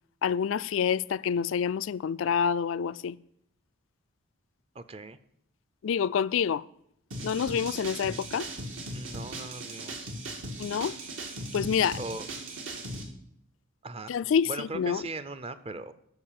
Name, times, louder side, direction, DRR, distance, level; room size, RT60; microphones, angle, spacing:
voice 1, 0.2-3.2 5.8-6.7 7.2-8.5 10.6-10.9 11.5-12.0 14.1-15.1, left 7 dB, 70° left, 0.3 m, -27 dB
voice 2, 4.7-5.2 8.9-10.1 12.0-12.3 13.8-14.1 14.4-15.9, right 2 dB, 30° right, 0.6 m, -39 dB
sound 1, 7.1-13.0, right 2 dB, 70° right, 2.0 m, -38 dB
13.0 x 4.9 x 7.5 m
head